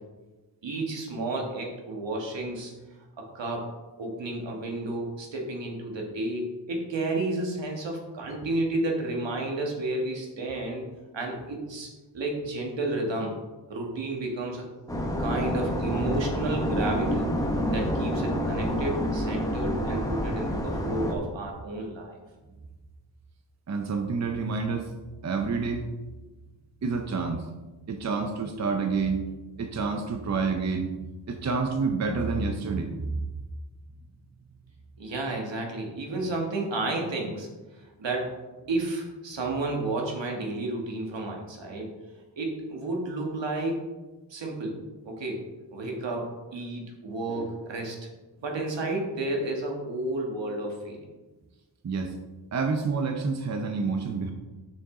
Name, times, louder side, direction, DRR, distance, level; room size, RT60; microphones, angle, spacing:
voice 1, 0.6-2.7 3.2-3.7 4.0-10.9 11.1-13.3 13.7-14.7 15.2-17.3 17.7-22.2 35.0-41.9 42.4-43.8 44.3-44.8 45.0-45.4 45.7-48.1 48.4-51.0, right 2 dB, 75° right, 0 dB, 1.7 m, -31 dB
sound 1, 14.9-21.1, equal, 10° left, 0.9 m, -28 dB
voice 2, 23.7-24.9 25.2-25.8 26.8-27.5 27.9-29.2 29.6-30.9 31.3-33.2 51.8-52.1 52.5-54.3, right 4 dB, 40° right, 4 dB, 0.6 m, -28 dB
7.0 x 6.3 x 3.7 m, 1.2 s
wide cardioid pair, 135°, 44 cm